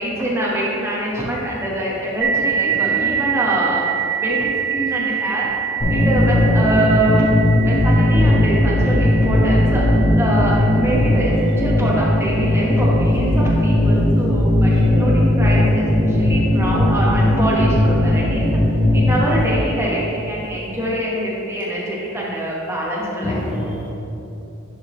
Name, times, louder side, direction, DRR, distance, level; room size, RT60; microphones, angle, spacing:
voice 1, 0.0-5.5 5.9-7.3 7.6-18.5 18.9-23.3, right 1 dB, 10° right, -5 dB, 1.2 m, -24 dB
sound 1, 2.2-11.4, right 8 dB, 65° right, 0.8 m, -25 dB
voice 2, 2.5-3.3 13.9-14.0 14.7-14.9 20.2-20.5 23.2-23.9, left 1 dB, 25° left, -4 dB, 0.6 m, -29 dB
sound 2, 5.8-19.4, left 1 dB, 45° left, 1.2 m, -17 dB
10.5 x 3.7 x 3.1 m, 2.8 s
head